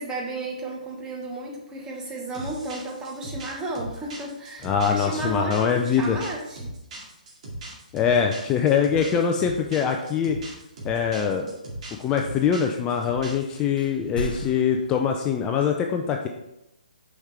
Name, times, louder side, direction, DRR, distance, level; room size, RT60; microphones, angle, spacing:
voice 1, 0.0-6.7 11.3-11.5, right 2 dB, 15° right, -1 dB, 1.1 m, -33 dB
sound 1, 2.3-13.5, right 1 dB, 50° right, 2.1 m, -38 dB
voice 2, 4.6-6.2 7.9-10.4 10.8-11.5 12.0-16.3, left 7 dB, 15° left, 3 dB, 0.4 m, -23 dB
sound 2, 13.8-14.9, left 1 dB, 80° left, 0.7 m, -34 dB
6.3 x 5.0 x 3.3 m, 0.89 s
figure-of-eight pair, 140°, 5 cm